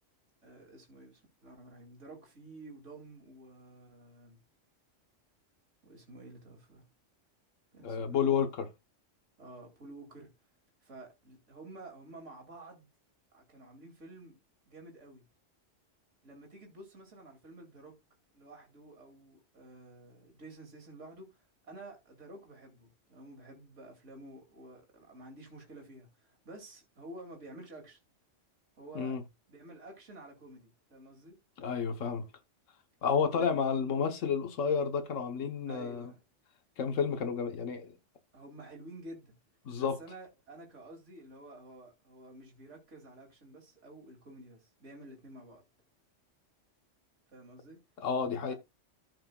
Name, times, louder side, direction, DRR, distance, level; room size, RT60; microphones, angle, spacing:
voice 1, 0.4-4.4 5.8-6.9 7.7-8.3 9.4-10.3 10.8-12.9 13.3-14.4 14.7-15.2 16.2-18.0 18.3-28.0 28.8-29.2 29.5-31.4 33.3-33.8 35.7-36.2 38.3-39.3 39.8-45.6 47.3-47.8, right 2 dB, 70° right, 2.9 m, -51 dB
voice 2, 7.8-8.7 28.9-29.2 31.6-32.2 33.0-36.1 36.8-38.0 39.6-40.0 48.0-48.5, left 6 dB, 85° left, 1.4 m, -31 dB
14.0 x 6.5 x 2.3 m
omnidirectional pair, 1.3 m